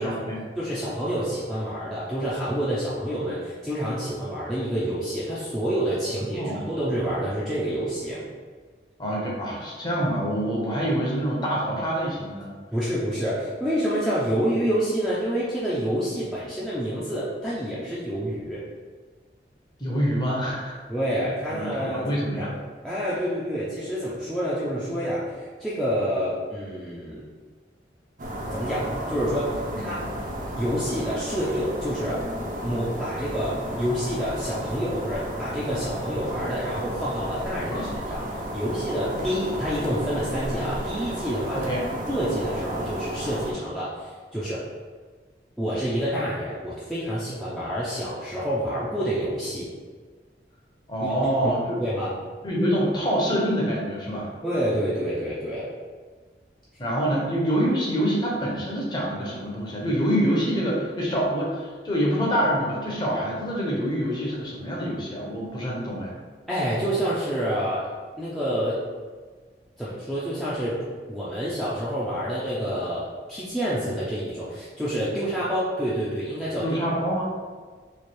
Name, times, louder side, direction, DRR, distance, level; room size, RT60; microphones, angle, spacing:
voice 1, 0.0-0.4 6.3-6.7 9.0-12.5 19.8-20.8 21.5-22.5 29.7-29.8 37.7-37.9 41.5-41.8 50.9-51.8 52.4-54.3 56.8-66.1 76.6-77.2, equal, 25° left, -4 dB, 0.8 m, -26 dB
voice 2, 0.6-8.2 12.7-18.6 20.9-22.5 22.8-27.3 28.5-30.1 30.6-32.3 32.6-41.7 42.1-44.7 45.6-49.7 51.0-51.1 51.4-51.5 51.8-52.2 54.4-55.7 66.5-67.9 68.2-68.8 69.8-70.8 71.1-76.8, equal, ahead, -10 dB, 0.5 m, -28 dB
sound 1, 28.2-43.5, equal, 45° right, 0.6 m, -33 dB
3.2 x 2.3 x 4.3 m, 1.5 s
head